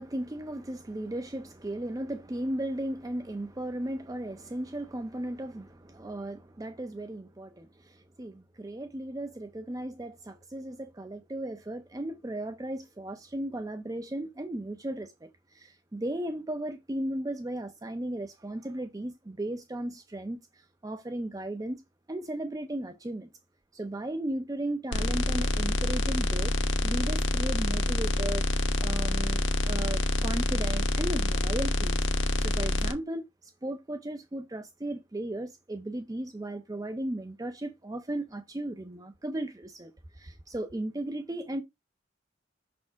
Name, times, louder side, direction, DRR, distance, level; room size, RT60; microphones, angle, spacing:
voice 1, 0.0-21.8 22.1-23.3 23.7-26.6 26.8-32.1 32.4-41.6, right 1 dB, 20° right, 0.5 m, -36 dB
sound 1, 24.9-32.9, left 1 dB, 75° left, 1.1 m, -27 dB
5.9 x 4.3 x 4.5 m
head